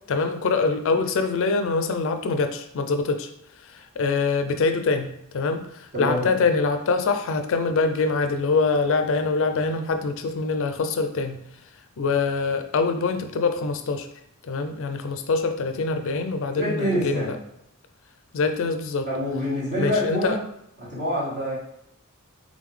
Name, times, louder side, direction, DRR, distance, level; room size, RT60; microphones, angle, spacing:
voice 1, 0.1-3.3 3.6-11.4 12.0-14.1 14.4-17.4 18.3-19.1 19.8-20.4, left 4 dB, 65° left, 7 dB, 0.4 m, -24 dB
voice 2, 5.9-6.3 16.5-17.3 19.1-20.4 20.8-21.5, equal, 45° right, -9 dB, 1.5 m, -26 dB
3.8 x 3.6 x 3.2 m, 0.77 s
head